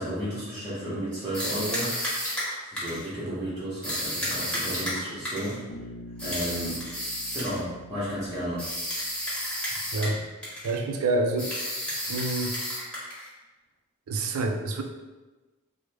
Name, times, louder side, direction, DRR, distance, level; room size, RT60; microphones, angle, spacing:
voice 1, 0.0-2.1 2.6-5.6 6.2-6.8 7.3-8.6, equal, 20° right, -13 dB, 0.8 m, -33 dB
sound 1, 1.3-3.1 3.8-5.6 6.2-7.6 8.6-10.2 10.4-10.8 11.4-13.3, equal, 5° left, 1.0 m, -32 dB
Bass guitar, 5.7-9.8, equal, 85° left, 0.4 m, -46 dB
voice 2, 10.6-11.6 12.1-12.5 14.1-14.8, right 2 dB, 80° right, 4 dB, 0.4 m, -27 dB
3.2 x 2.0 x 3.2 m, 1.2 s
head